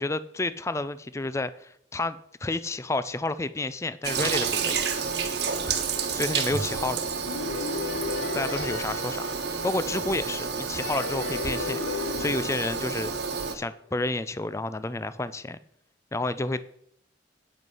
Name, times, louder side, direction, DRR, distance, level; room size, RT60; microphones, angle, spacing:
voice 1, 0.0-4.9 6.1-7.0 8.3-13.1 13.5-15.6 16.1-16.6, left 2 dB, 15° left, 14 dB, 0.4 m, -30 dB
Toilet flush, 4.0-13.6, right 5 dB, 60° right, 1.4 m, -30 dB
sound 1, 7.3-10.1 10.8-13.6, left 5 dB, 85° left, 0.6 m, -35 dB
9.2 x 8.2 x 5.5 m, 0.69 s
head